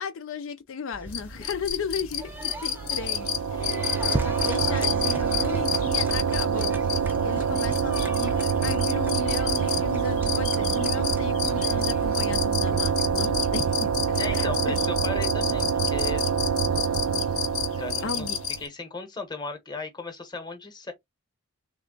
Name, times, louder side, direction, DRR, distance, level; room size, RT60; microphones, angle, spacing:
voice 1, 0.0-6.7 7.2-14.8 18.0-18.4, left 5 dB, 65° left, 0.4 m, -35 dB
sound 1, 0.9-13.8, right 1 dB, 10° right, 0.4 m, -39 dB
sound 2, 1.1-18.7, left 9 dB, 85° left, 0.7 m, -32 dB
sound 3, 2.7-18.6, right 6 dB, 85° right, 0.3 m, -26 dB
voice 2, 14.2-16.2 17.7-18.3 18.6-20.9, left 3 dB, 20° left, 0.9 m, -36 dB
3.3 x 2.1 x 3.7 m
head